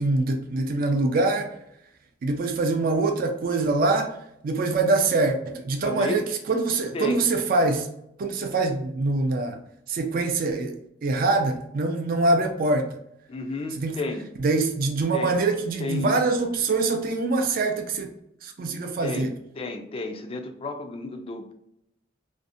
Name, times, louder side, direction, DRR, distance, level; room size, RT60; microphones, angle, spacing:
voice 1, 0.0-1.5 2.2-4.1 4.4-7.9 8.2-9.6 9.9-13.0 13.8-14.0 14.4-18.1 18.4-19.4, right 3 dB, 50° right, 0.4 m, -24 dB
voice 2, 5.8-6.2 6.9-7.2 13.3-14.2 15.1-15.4 15.8-16.3 18.7-19.3 19.6-21.5, left 2 dB, 30° left, 0.3 m, -32 dB
2.5 x 2.0 x 2.5 m
head